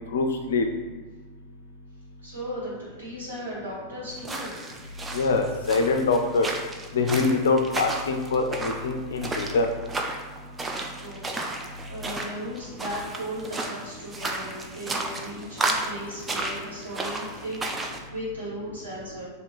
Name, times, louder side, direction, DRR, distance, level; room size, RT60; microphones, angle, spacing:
voice 1, 0.1-0.7 5.1-6.5 6.9-9.7, left 3 dB, 65° left, 5 dB, 0.3 m, -24 dB
voice 2, 2.2-4.6 11.0-19.2, equal, 70° right, -8 dB, 1.5 m, -37 dB
sound 1, 4.2-18.0, right 2 dB, 15° right, 0.3 m, -33 dB
2.8 x 2.5 x 3.3 m, 1.3 s
figure-of-eight pair, 90°, 0 cm